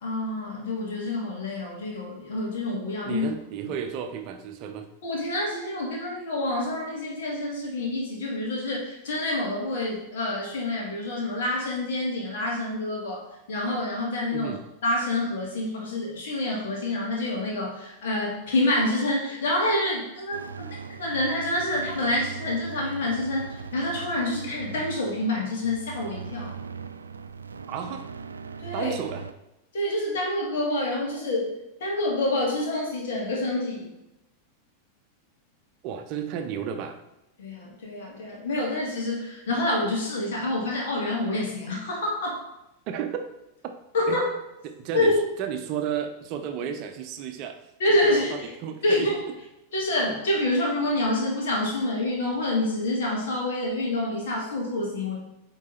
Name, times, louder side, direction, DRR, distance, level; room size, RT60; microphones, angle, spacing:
voice 1, 0.0-3.3 5.0-13.2 13.5-14.6 14.8-20.7 21.0-26.5 28.6-28.9 29.7-31.5 31.8-33.9 37.4-42.4 43.9-44.3 44.9-45.2 47.8-48.5 48.8-49.2 49.7-55.2, left 1 dB, 60° left, -3 dB, 2.3 m, -27 dB
voice 2, 3.0-4.9 14.3-14.6 27.7-28.1 28.7-29.2 35.8-37.0 42.9-43.3 44.1-44.2 44.6-47.6 47.9-49.1, right 8 dB, 40° right, 6 dB, 0.7 m, -33 dB
sound 1, 20.3-29.3, right 6 dB, 75° right, 0.3 m, -39 dB
8.4 x 3.9 x 4.1 m, 0.92 s
figure-of-eight pair, 90°, 0 cm